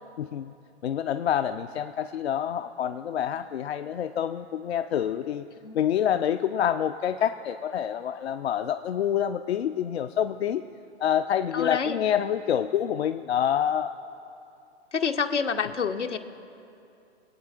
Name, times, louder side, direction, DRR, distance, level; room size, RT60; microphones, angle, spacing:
voice 1, 0.2-0.5 0.8-5.4 5.7-10.6 11.0-13.9, left 9 dB, 65° left, 9 dB, 0.5 m, -27 dB
voice 2, 11.5-12.0 14.9-16.2, left 6 dB, 80° left, 6 dB, 1.0 m, -27 dB
25.0 x 8.7 x 2.4 m, 2.6 s
figure-of-eight pair, 115°, 35 cm